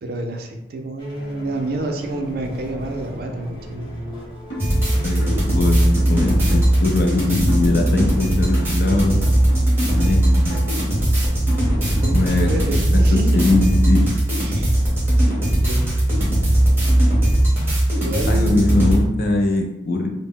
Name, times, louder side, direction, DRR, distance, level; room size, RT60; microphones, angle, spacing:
voice 1, 0.0-3.9 11.4-11.6 12.0-13.6 14.4-14.7 15.2-15.9 16.8-17.0 18.0-18.8, right 2 dB, 50° right, 3 dB, 0.3 m, -28 dB
sound 1, 1.0-11.1, equal, 25° left, 0.7 m, -37 dB
sound 2, 4.5-4.8 5.2-8.9 9.2-12.5, equal, 80° left, 0.9 m, -35 dB
sound 3, 4.6-19.0, right 1 dB, 10° right, 0.7 m, -18 dB
voice 2, 4.7-5.2 5.5-9.2 9.8-10.6 12.1-12.5 12.9-14.1 18.3-20.1, left 2 dB, 50° left, 2 dB, 0.4 m, -21 dB
2.0 x 2.0 x 3.6 m, 0.91 s
head